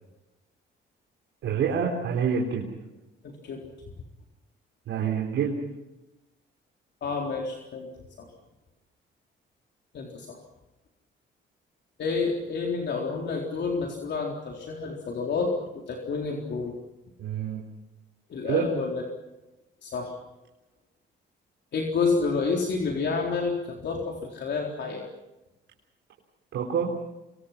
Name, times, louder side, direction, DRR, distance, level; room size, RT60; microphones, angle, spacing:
voice 1, 1.4-2.7 4.9-5.6 17.2-17.6 18.4-18.6 26.5-26.9, right 7 dB, 80° right, -1 dB, 4.0 m, -27 dB
voice 2, 3.2-3.6 7.0-7.9 8.2-8.3 9.9-10.4 12.0-16.8 18.3-19.0 19.8-20.1 21.7-25.1, left 4 dB, 60° left, 0 dB, 4.0 m, -29 dB
27.0 x 25.0 x 5.9 m, 0.97 s
cardioid pair, 90°, 20 cm